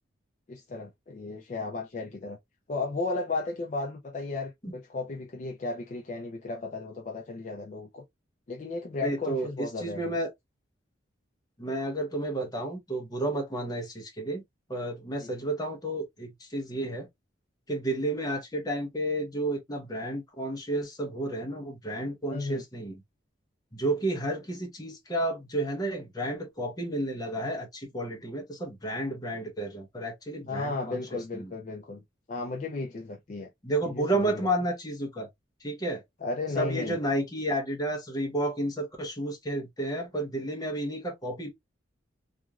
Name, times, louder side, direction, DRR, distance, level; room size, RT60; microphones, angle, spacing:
voice 1, 0.5-2.4 2.7-8.0 8.5-10.1 15.2-15.5 22.3-22.6 30.5-32.0 32.3-33.5 33.8-34.5 36.2-37.0, left 3 dB, 40° left, 0.3 m, -34 dB
voice 2, 9.0-10.3 11.6-14.4 14.7-17.1 17.7-23.0 23.7-31.5 33.6-35.3 35.6-36.0 36.6-41.5, right 1 dB, 20° left, 0.7 m, -31 dB
2.9 x 2.4 x 2.2 m
head